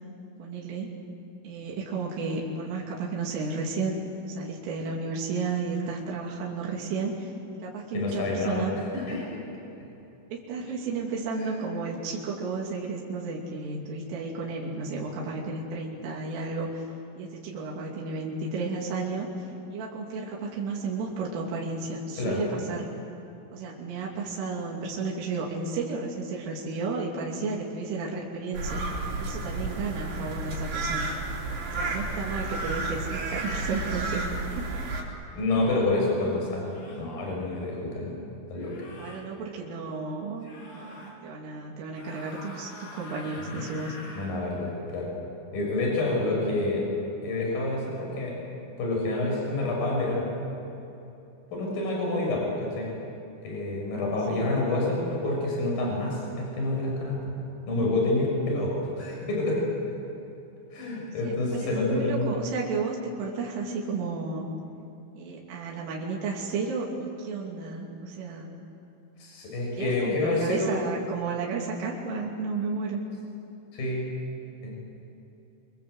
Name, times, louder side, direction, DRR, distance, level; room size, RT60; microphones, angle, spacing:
voice 1, 0.4-0.9 1.4-7.3 7.6-8.8 10.3-16.8 17.2-22.9 23.5-28.8 29.2-31.1 31.7-34.2 34.5-34.7 39.0-40.5 40.7-43.9 51.8-52.0 54.3-54.5 61.2-64.5 65.2-68.5 69.8-73.0, right 4 dB, 80° right, -3 dB, 5.3 m, -33 dB
voice 2, 7.9-8.6 8.9-9.4 22.2-22.4 35.3-38.1 38.5-38.8 43.5-43.6 44.1-45.1 45.5-46.8 47.2-48.3 48.8-50.3 51.5-52.9 53.4-57.2 57.7-59.6 60.7-62.3 69.2-70.7 73.7-74.1 74.6-74.7, left 2 dB, 45° left, -2 dB, 8.2 m, -28 dB
sound 1, 28.5-35.0, right 2 dB, 55° right, 5.9 m, -32 dB
sound 2, 35.3-35.4 36.6-37.1 38.5-39.2 40.4-41.1 41.9-44.3, left 2 dB, 75° left, 6.7 m, -45 dB
26.5 x 26.0 x 8.0 m, 3.0 s
omnidirectional pair, 5.7 m